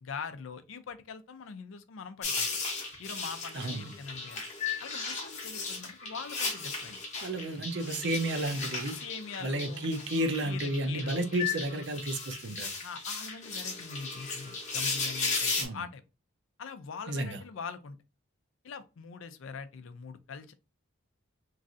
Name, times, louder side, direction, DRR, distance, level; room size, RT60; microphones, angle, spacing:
voice 1, 0.0-2.5 3.0-4.4 4.8-7.0 9.0-9.9 10.4-11.3 12.8-16.0 16.6-18.0 18.6-20.5, left 5 dB, 65° left, 0.4 m, -43 dB
sound 1, 2.2-15.6, left 4 dB, 35° left, 0.8 m, -36 dB
voice 2, 3.5-3.9 7.2-9.0 9.4-12.7 15.6-15.9 17.1-17.4, right 1 dB, 55° right, 0.5 m, -32 dB
3.1 x 2.5 x 2.4 m
head